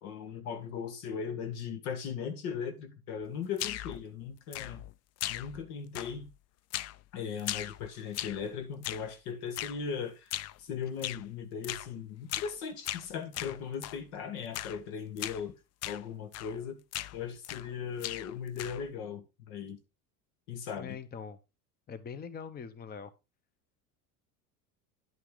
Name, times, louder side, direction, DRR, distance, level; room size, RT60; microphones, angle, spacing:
voice 1, 0.0-4.8 5.3-6.3 7.1-15.5 15.9-16.8 17.1-19.8 20.5-21.0, left 7 dB, 75° left, 1.8 m, -38 dB
sound 1, 3.6-4.0 4.5-4.9 5.2-5.7 5.9-6.3 6.7-7.0 7.4-8.5 8.8-9.1 9.5-9.8 10.3-10.6 11.0-11.2 11.6-11.9 12.3-12.6 12.8-14.0 14.5-14.8 15.2-15.4 15.8-16.0 16.3-16.6 16.9-17.7 18.0-18.9, left 14 dB, 40° left, 0.4 m, -38 dB
voice 2, 20.8-21.4 21.9-23.1, left 6 dB, 20° left, 0.8 m, -42 dB
10.5 x 5.7 x 3.9 m
supercardioid pair, 95°, 45 cm